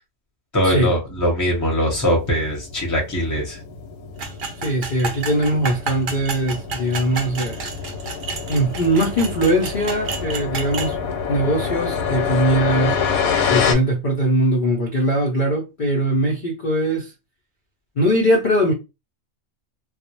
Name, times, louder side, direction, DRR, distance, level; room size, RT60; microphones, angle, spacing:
voice 1, 0.5-3.6, equal, 15° left, 0.7 m, -21 dB
sound 1, 1.9-13.7, left 6 dB, 90° left, 1.0 m, -27 dB
sound 2, 4.2-10.9, right 5 dB, 60° right, 0.5 m, -31 dB
voice 2, 4.6-7.7 8.5-11.0 11.3-13.0 13.4-17.1 18.0-18.7, right 1 dB, 50° left, 0.6 m, -21 dB
2.4 x 2.0 x 2.9 m
omnidirectional pair, 1.4 m